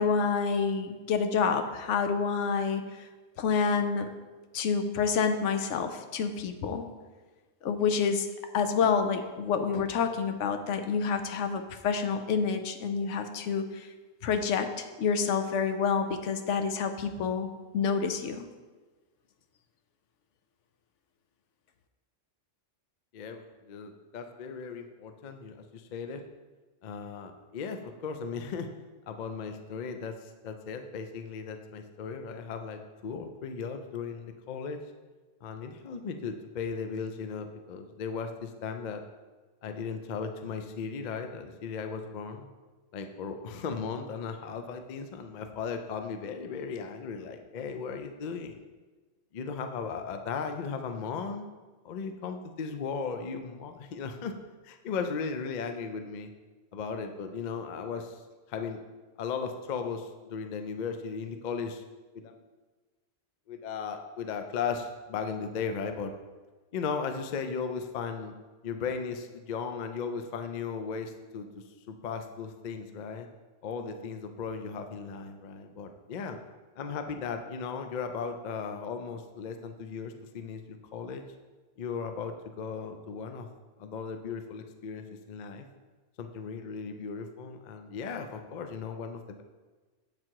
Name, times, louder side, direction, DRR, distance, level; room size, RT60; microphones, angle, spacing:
voice 1, 0.0-2.9 3.4-4.2 4.5-6.9 7.6-8.3 8.5-13.9 14.2-17.5 17.7-18.4, left 6 dB, 80° left, 8 dB, 0.9 m, -28 dB
voice 2, 23.1-26.2 26.8-28.7 29.1-34.8 35.4-39.0 39.6-42.5 42.9-48.6 49.3-51.5 51.8-54.3 54.6-56.3 56.7-58.2 58.5-58.8 59.2-61.8 62.1-62.4 63.5-66.1 66.7-68.3 68.6-71.5 71.9-73.3 73.6-76.4 76.8-81.2 81.8-83.5 83.8-85.7 86.2-89.4, left 5 dB, 55° left, 7 dB, 0.5 m, -36 dB
7.6 x 3.7 x 4.5 m, 1.3 s
omnidirectional pair, 1.2 m